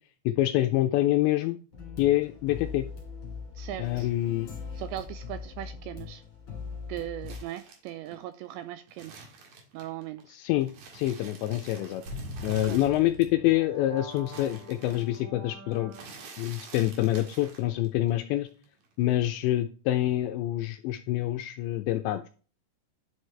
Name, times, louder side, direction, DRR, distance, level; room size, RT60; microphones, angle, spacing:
voice 1, 0.3-1.6 2.0-2.9 3.8-4.5 10.3-12.0 12.4-15.9 16.4-18.5 19.0-22.3, left 15 dB, 85° left, 7 dB, 2.6 m, -26 dB
sound 1, 1.7-7.4, left 5 dB, 30° left, 3.4 m, -41 dB
voice 2, 3.6-4.1 4.8-6.2 6.9-9.1 9.7-10.2 12.5-12.9, right 13 dB, 85° right, 10 dB, 2.6 m, -39 dB
sound 2, 7.3-10.2 10.6-13.5 13.7-18.1 18.4-19.3, right 4 dB, 55° right, 3.1 m, -48 dB
sound 3, 12.1-16.5, left 1 dB, 40° right, 2.6 m, -42 dB
10.0 x 6.4 x 3.2 m, 0.37 s
omnidirectional pair, 5.6 m